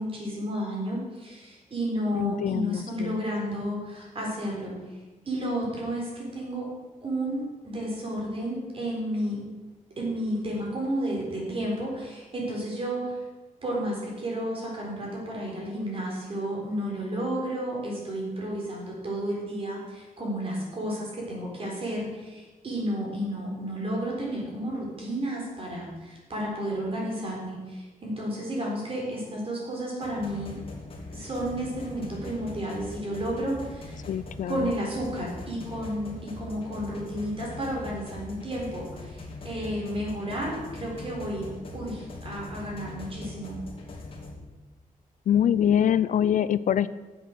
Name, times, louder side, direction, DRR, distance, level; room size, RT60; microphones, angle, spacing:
voice 1, 0.0-4.7 5.3-6.7 7.0-9.4 10.0-13.2 13.6-30.5 31.1-34.0 34.5-41.5 41.7-43.6, right 1 dB, 40° right, -3 dB, 4.0 m, -32 dB
voice 2, 2.1-3.2 34.1-34.7 45.3-46.9, left 9 dB, 65° left, 16 dB, 0.4 m, -24 dB
sound 1, 30.0-44.3, left 2 dB, 40° left, 2.8 m, -41 dB
9.8 x 8.0 x 6.6 m, 1.2 s
wide cardioid pair, 165°, 15 cm